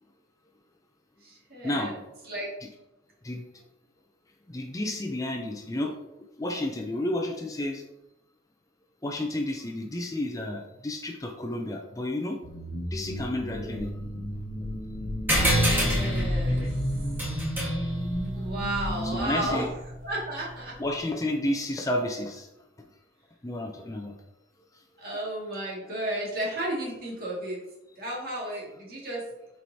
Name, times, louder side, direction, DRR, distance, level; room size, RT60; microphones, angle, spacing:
voice 1, 1.2-1.9 2.3-2.5 13.5-13.8 15.4-16.7 18.3-19.6 20.0-20.7 25.0-27.6 28.0-29.2, right 1 dB, 55° right, -4 dB, 2.2 m, -33 dB
voice 2, 4.5-5.9 6.4-7.8 9.0-12.4 12.9-13.9 19.0-19.7 20.8-22.5 23.4-24.1, left 1 dB, 20° left, 3 dB, 0.5 m, -31 dB
sound 1, 12.4-19.7, left 1 dB, 60° left, 0.9 m, -32 dB
sound 2, 15.3-20.2, equal, 10° right, 1.5 m, -29 dB
7.5 x 4.5 x 2.8 m, 0.94 s
head